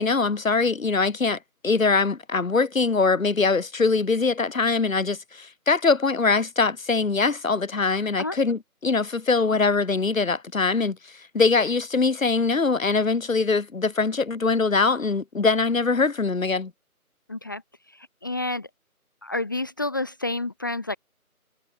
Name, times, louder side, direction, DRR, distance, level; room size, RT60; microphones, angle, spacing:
voice 1, 0.0-1.4 1.6-11.0 11.3-16.7, left 4 dB, 65° left, 1.7 m, -22 dB
voice 2, 17.3-17.6 17.9-18.7 19.2-21.0, left 2 dB, 15° left, 1.4 m, -29 dB
figure-of-eight pair, 165°, 44 cm